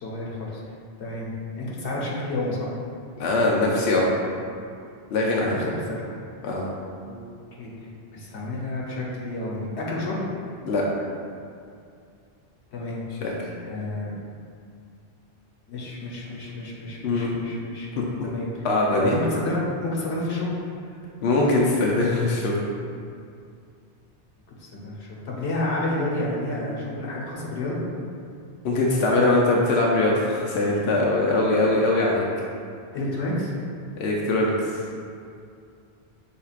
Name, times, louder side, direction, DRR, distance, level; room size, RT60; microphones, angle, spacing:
voice 1, 0.0-0.6 1.0-1.3 1.6-2.7 5.4-6.1 7.0-7.7 8.1-10.2 12.7-13.0 13.6-14.1 15.7-18.5 18.9-20.5 24.6-27.8 32.9-33.5, left 2 dB, 90° left, -5 dB, 1.2 m, -30 dB
voice 2, 3.2-4.1 5.1-5.7 6.4-6.7 10.6-10.8 13.2-13.3 17.0-17.3 18.0-18.1 18.6-19.1 21.2-22.6 28.6-32.2 34.0-34.7, left 2 dB, 75° left, -3 dB, 0.8 m, -22 dB
5.7 x 3.8 x 2.4 m, 2.4 s
omnidirectional pair, 1.1 m